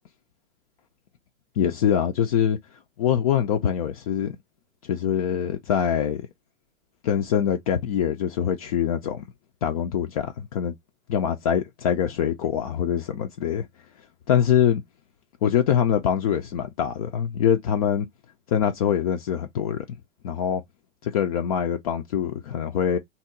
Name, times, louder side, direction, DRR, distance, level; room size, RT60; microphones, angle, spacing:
voice 1, 1.6-2.6 3.0-4.4 4.8-6.2 7.0-9.2 9.6-10.8 11.1-13.7 14.3-14.8 15.4-18.1 18.5-20.0 20.2-20.6 21.0-23.0, left 9 dB, 35° left, 0.4 m, -24 dB
2.8 x 2.0 x 3.4 m
figure-of-eight pair, 105°, 35 cm